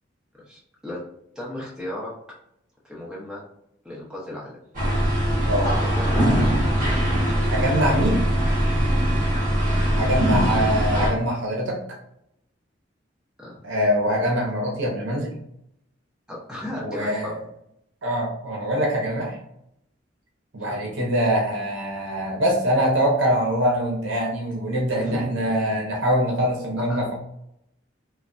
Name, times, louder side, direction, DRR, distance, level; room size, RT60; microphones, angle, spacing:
voice 1, 0.5-1.0 1.3-2.1 2.8-3.4 3.8-4.6 5.8-6.4 9.4-9.5 13.4-13.6 16.3-17.4 20.6-20.9 25.0-25.5 26.7-27.0, left 1 dB, 5° right, -6 dB, 0.8 m, -35 dB
sound 1, 4.7-11.1, equal, 45° right, 1.1 m, -21 dB
voice 2, 7.5-8.2 10.0-11.8 13.6-15.3 16.8-17.4 18.0-19.4 20.5-27.1, equal, 70° right, -1 dB, 0.7 m, -23 dB
3.2 x 2.1 x 2.5 m, 0.76 s
head